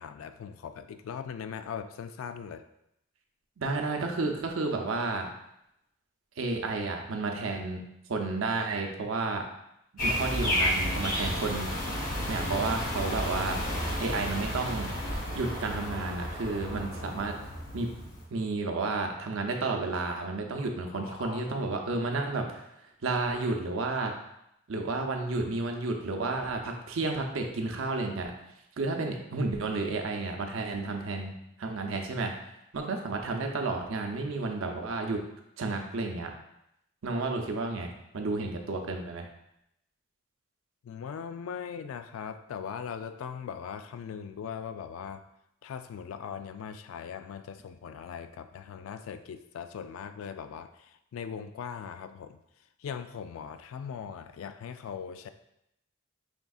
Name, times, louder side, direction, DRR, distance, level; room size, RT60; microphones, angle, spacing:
voice 1, 0.0-2.6 20.9-21.6 40.8-45.2 45.6-52.4 52.8-55.3, left 7 dB, 85° left, 9 dB, 0.3 m, -40 dB
voice 2, 3.6-5.3 6.4-7.8 8.1-9.4 9.9-11.7 12.2-13.6 14.0-14.9 15.3-17.4 17.7-17.9 18.3-22.6 23.0-24.1 24.7-28.3 28.8-32.3 32.7-35.2 35.6-36.3 37.0-39.3, right 3 dB, 80° right, 3 dB, 0.6 m, -31 dB
sound 1, 10.0-18.2, equal, 40° left, 0.9 m, -32 dB
5.2 x 3.4 x 2.3 m, 0.81 s
head